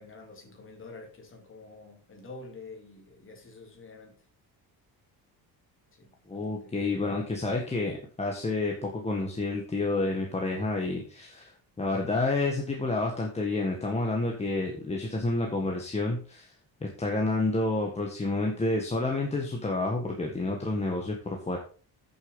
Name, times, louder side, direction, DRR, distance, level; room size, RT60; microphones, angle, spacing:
voice 1, 0.0-4.1 6.0-6.7, left 3 dB, 30° left, 3.6 m, -48 dB
voice 2, 6.3-11.5 11.8-16.5 16.8-21.1 21.5-21.6, left 2 dB, 15° left, 1.6 m, -29 dB
8.8 x 7.2 x 5.2 m
cardioid pair, 165°, 39 cm